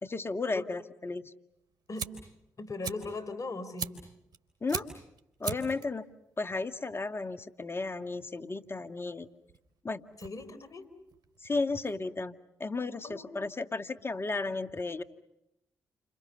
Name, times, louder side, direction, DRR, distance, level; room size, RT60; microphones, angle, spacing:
voice 1, 0.0-1.3 4.6-4.9 5.4-6.0 6.4-9.3 9.8-10.0 11.4-12.3 12.6-15.0, left 3 dB, 35° left, 9 dB, 1.9 m, -34 dB
Fire, 1.5-12.0, right 5 dB, 65° right, 3.4 m, -43 dB
voice 2, 2.6-3.9 10.2-10.9 13.0-13.3, left 3 dB, 50° left, 13 dB, 4.2 m, -39 dB
29.5 x 27.5 x 6.8 m, 0.85 s
hypercardioid pair, 40°, 7 cm